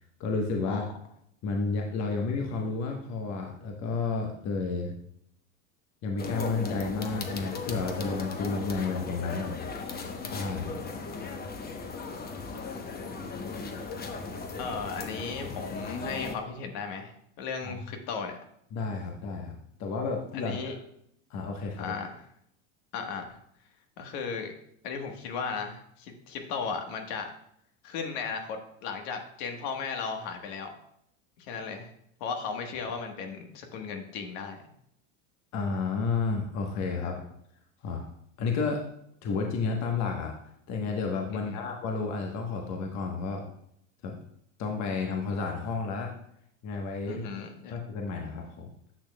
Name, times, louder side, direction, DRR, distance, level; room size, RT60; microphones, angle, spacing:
voice 1, 0.2-0.8 1.4-4.9 6.0-9.6 10.3-10.8 17.6-17.9 18.7-20.8 21.3-21.9 35.5-37.1 37.8-38.1 38.4-38.8 39.2-40.4 40.7-43.4 44.0-44.2 44.6-46.1 46.6-47.2 47.7-48.7, left 4 dB, 45° left, 2 dB, 1.2 m, -31 dB
sound 1, 6.2-16.4, left 4 dB, 25° left, 0.9 m, -37 dB
voice 2, 10.7-11.4 14.6-18.3 20.3-20.8 21.8-22.1 22.9-23.3 24.0-24.5 24.8-27.3 27.8-30.7 31.4-31.9 32.2-34.6 36.9-37.2 41.3-41.7 47.1-47.8, left 5 dB, 60° left, 4 dB, 1.4 m, -36 dB
10.0 x 6.3 x 2.3 m, 0.72 s
hypercardioid pair, 105°, 40 cm